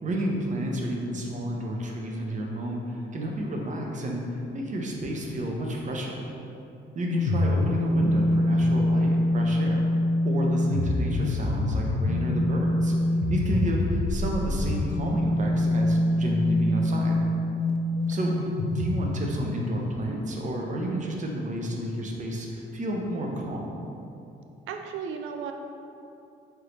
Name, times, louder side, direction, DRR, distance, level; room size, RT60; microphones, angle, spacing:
voice 1, 0.0-6.2 6.9-9.9 10.2-12.9 13.3-17.2 18.1-23.8, right 1 dB, 40° right, 0 dB, 0.6 m, -31 dB
sound 1, 7.1-19.9, left 1 dB, 50° left, 0.4 m, -25 dB
voice 2, 18.0-18.4 24.7-25.5, right 6 dB, 80° right, 4 dB, 0.4 m, -37 dB
3.7 x 3.4 x 3.0 m, 2.7 s
cardioid pair, 90°, 20 cm